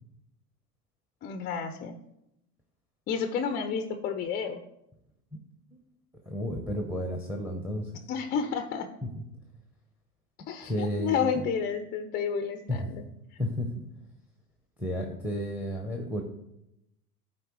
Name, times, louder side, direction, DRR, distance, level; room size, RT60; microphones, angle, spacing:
voice 1, 1.2-2.0 3.1-4.6 8.1-8.9 10.5-13.0, left 6 dB, 20° left, 7 dB, 0.4 m, -31 dB
voice 2, 6.3-7.9 9.1-9.2 10.6-11.4 12.7-12.8 13.4-13.8 14.8-16.2, equal, 5° right, 3 dB, 0.8 m, -32 dB
12.5 x 4.5 x 3.0 m, 0.86 s
hypercardioid pair, 85°, 48 cm